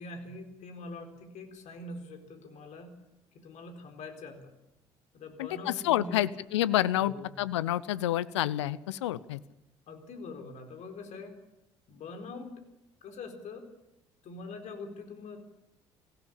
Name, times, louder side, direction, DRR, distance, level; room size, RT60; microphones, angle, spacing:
voice 1, 0.0-2.9 3.3-4.5 5.1-6.3 7.0-7.4 9.9-11.4 11.9-12.6 13.0-13.7 14.2-15.4, left 3 dB, 50° left, 6 dB, 4.2 m, -44 dB
voice 2, 5.4-9.4, left 13 dB, 75° left, 18 dB, 0.7 m, -29 dB
23.0 x 16.5 x 8.8 m, 0.89 s
figure-of-eight pair, 55°, 15 cm